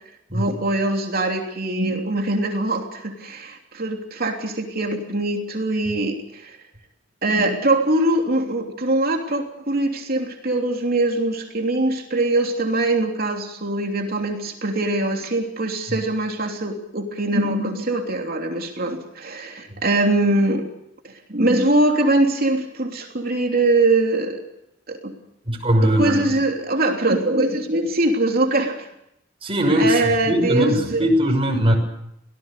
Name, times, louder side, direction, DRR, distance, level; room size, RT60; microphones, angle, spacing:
voice 1, 0.3-6.6 7.2-20.6 21.0-24.4 24.9-25.1 25.8-28.9 29.8-31.1, right 2 dB, 50° right, 2 dB, 3.2 m, -22 dB
voice 2, 25.5-26.3 29.4-31.8, equal, 30° right, 2 dB, 6.3 m, -20 dB
24.5 x 18.0 x 6.8 m, 0.79 s
head